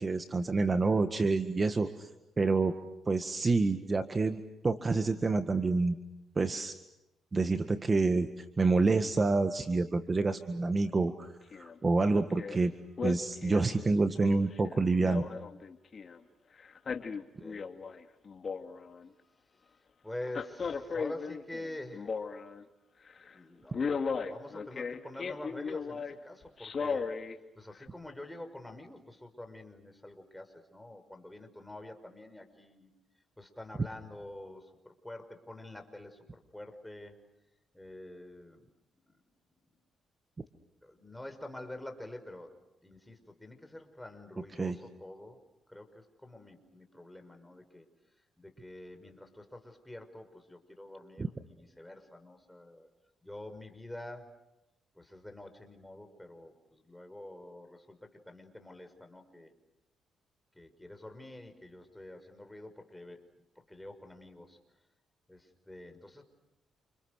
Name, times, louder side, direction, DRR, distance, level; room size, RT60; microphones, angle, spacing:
voice 1, 0.0-2.1 2.4-2.7 3.1-6.0 6.4-6.7 7.3-11.3 11.6-12.7 13.0-15.2 44.5-44.8 51.2-51.3, right 3 dB, 30° right, 8 dB, 1.7 m, -28 dB
Male speech man speaking, 11.5-11.8 12.1-12.6 13.0-16.2 16.6-18.0 18.3-19.1 20.2-22.6 23.1-23.3 23.7-26.1 26.6-27.4 27.8-27.9, left 5 dB, 45° left, 2.6 m, -36 dB
voice 2, 17.1-17.7 20.0-22.2 23.3-27.2 27.6-32.9 33.4-37.2 37.7-38.7 39.1-39.2 40.4-40.5 40.8-42.5 42.8-45.4 45.7-47.9 48.4-52.9 53.2-54.3 55.0-59.5 60.6-63.2 63.6-64.6 65.3-66.2, left 1 dB, 5° left, 6 dB, 5.5 m, -47 dB
29.0 x 29.0 x 6.6 m, 0.91 s
cardioid pair, 90°, 0 cm